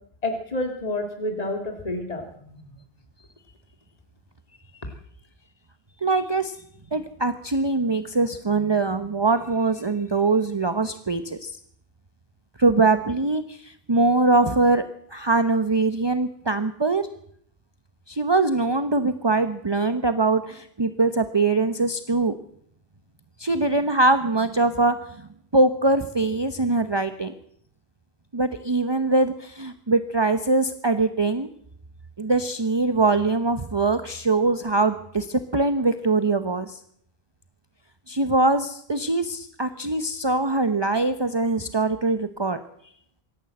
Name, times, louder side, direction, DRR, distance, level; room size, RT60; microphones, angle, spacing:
voice 1, 0.2-2.7, left 1 dB, 40° left, 4 dB, 2.6 m, -29 dB
voice 2, 6.0-6.6 6.9-11.5 12.6-14.8 15.1-17.1 18.1-22.3 23.4-25.0 25.5-27.3 28.3-31.5 32.2-36.8 38.1-42.6, right 3 dB, 25° right, 10 dB, 0.9 m, -22 dB
25.0 x 13.5 x 7.8 m, 0.68 s
omnidirectional pair, 1.0 m